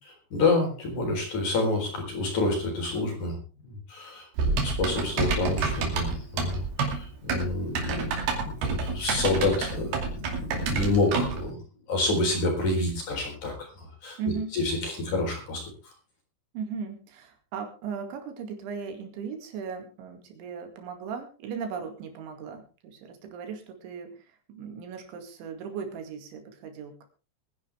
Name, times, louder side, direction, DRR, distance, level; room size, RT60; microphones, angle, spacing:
voice 1, 0.0-3.4 3.6-11.6 11.9-14.2 14.5-15.9, left 2 dB, 45° left, 2 dB, 5.1 m, -28 dB
Typing, 4.4-11.4, right 4 dB, 60° right, 4.2 m, -28 dB
voice 2, 14.2-14.5 16.5-24.2 24.5-27.1, right 6 dB, 90° right, 6 dB, 4.7 m, -37 dB
22.5 x 10.5 x 3.5 m, 0.34 s
omnidirectional pair, 5.2 m